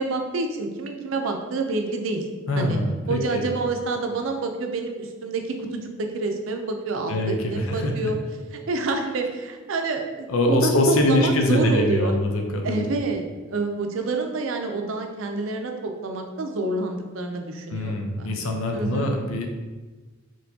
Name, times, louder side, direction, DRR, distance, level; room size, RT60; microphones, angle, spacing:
voice 1, 0.0-2.2 2.5-2.8 3.1-5.4 5.7-7.1 7.4-8.2 8.5-12.1 12.6-13.2 13.5-18.3 18.7-19.1, right 3 dB, 70° right, 4 dB, 0.5 m, -27 dB
voice 2, 2.5-3.4 7.1-8.1 10.3-12.9 17.7-19.5, left 1 dB, 90° left, 3 dB, 0.6 m, -23 dB
4.3 x 3.0 x 2.7 m, 1.3 s
head